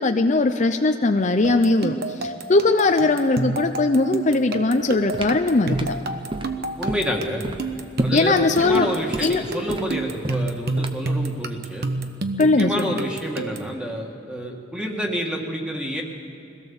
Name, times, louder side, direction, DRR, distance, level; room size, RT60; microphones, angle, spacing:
voice 1, 0.0-5.9 8.1-8.9 9.2-9.4 12.4-12.9, left 3 dB, 40° left, 6 dB, 0.6 m, -20 dB
sound 1, 1.4-13.8, right 2 dB, 55° right, 1.0 m, -29 dB
sound 2, 4.7-11.2, right 1 dB, 25° right, 1.0 m, -32 dB
voice 2, 6.8-7.4 8.0-11.9 12.4-16.0, equal, 5° right, 1 dB, 2.0 m, -28 dB
22.5 x 17.0 x 7.2 m, 2.8 s
head